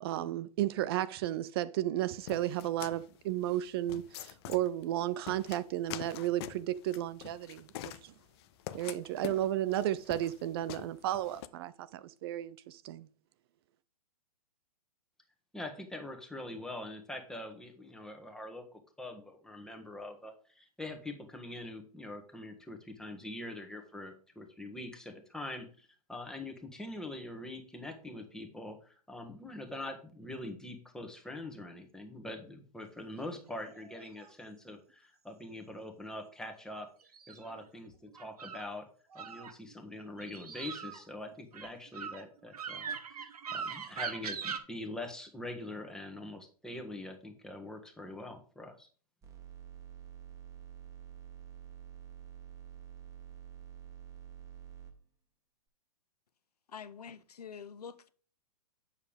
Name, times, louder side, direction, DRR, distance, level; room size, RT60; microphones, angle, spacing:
voice 1, 0.0-8.1 8.7-13.1, right 13 dB, 40° right, 0.5 m, -33 dB
sound 1, 2.3-11.5, left 13 dB, 40° left, 0.6 m, -45 dB
voice 2, 15.5-36.9 37.3-38.9 39.1-48.9, left 1 dB, 5° left, 1.5 m, -44 dB
sound 2, 33.3-34.3 37.0-38.7 39.1-39.8 40.2-44.6, right 6 dB, 70° right, 1.4 m, -41 dB
sound 3, 49.2-54.9, right 10 dB, 15° right, 1.6 m, -49 dB
voice 3, 56.7-58.1, left 7 dB, 75° left, 0.8 m, -46 dB
8.3 x 7.0 x 3.5 m
hypercardioid pair, 120°, 20 cm